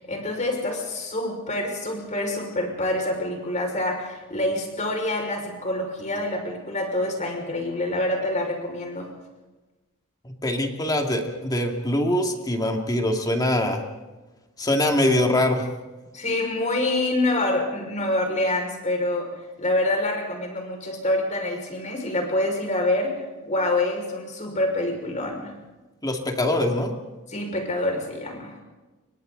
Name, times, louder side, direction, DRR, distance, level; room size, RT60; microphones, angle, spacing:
voice 1, 0.0-9.1 16.1-19.3 19.6-25.6 27.3-28.6, left 1 dB, 35° left, 2 dB, 5.7 m, -26 dB
voice 2, 10.2-13.8 14.6-15.7 26.0-26.9, left 1 dB, 20° left, 2 dB, 2.4 m, -23 dB
29.0 x 24.5 x 4.1 m, 1.2 s
head